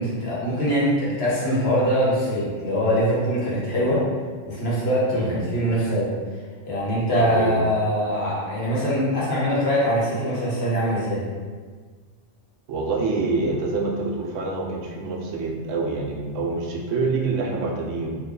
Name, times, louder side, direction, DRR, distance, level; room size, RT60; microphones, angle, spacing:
voice 1, 0.0-4.0 4.4-6.1 6.6-11.2, equal, 55° left, -7 dB, 1.2 m, -23 dB
voice 2, 7.2-7.5 12.7-18.2, right 3 dB, 80° right, -1 dB, 0.9 m, -26 dB
3.1 x 2.2 x 3.6 m, 1.6 s
omnidirectional pair, 1.3 m